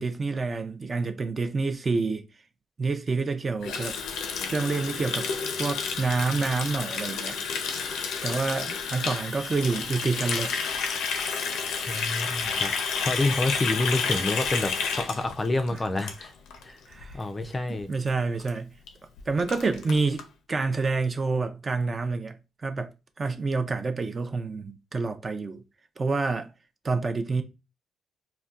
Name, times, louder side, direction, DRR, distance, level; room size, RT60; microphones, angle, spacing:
voice 1, 0.0-2.2 2.8-3.9 4.4-5.3 5.6-7.4 8.2-10.5 16.9-17.2 17.9-18.7 19.3-20.2 20.5-22.4 22.6-22.9 23.2-25.6 26.0-26.5 26.8-27.4, right 4 dB, 35° right, 0.5 m, -28 dB
Water tap faucet, 3.6-16.6 16.9-17.2 17.5-17.8 18.1-18.2 18.4-18.5 18.9-19.0 19.2-20.2, left 5 dB, 85° left, 0.5 m, -30 dB
voice 2, 11.9-16.3 16.6-16.8 17.1-17.9, left 2 dB, 25° left, 0.4 m, -28 dB
3.8 x 2.2 x 2.4 m
cardioid pair, 90°, 0 cm